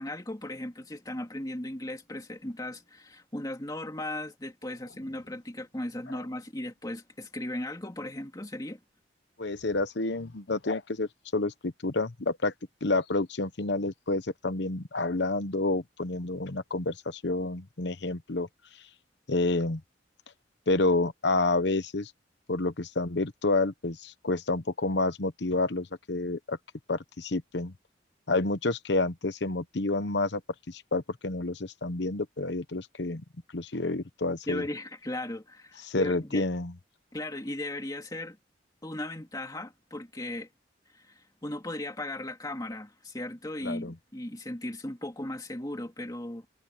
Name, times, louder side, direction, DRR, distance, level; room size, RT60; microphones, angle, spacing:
voice 1, 0.0-8.8 34.5-36.4 37.1-38.4 38.8-40.5 40.9-46.5, left 1 dB, 20° left, 2.4 m, -37 dB
voice 2, 9.4-12.5 12.8-18.5 19.3-19.8 20.7-22.1 22.5-26.6 26.9-27.7 28.3-30.4 30.7-33.2 33.5-34.6 35.9-36.7 43.6-43.9, left 2 dB, 65° left, 1.0 m, -29 dB
head